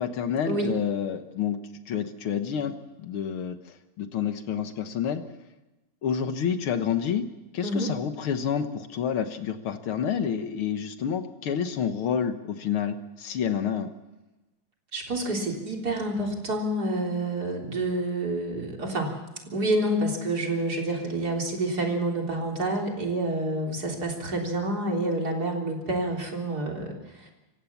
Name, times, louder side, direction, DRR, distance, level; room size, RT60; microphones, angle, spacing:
voice 1, 0.0-1.6 1.9-5.2 6.0-7.3 7.5-13.9, left 8 dB, 85° left, 8 dB, 2.1 m, -29 dB
voice 2, 14.9-19.2 19.5-27.3, right 1 dB, 45° right, 1 dB, 4.1 m, -28 dB
26.5 x 15.5 x 7.2 m, 1.0 s
omnidirectional pair, 2.3 m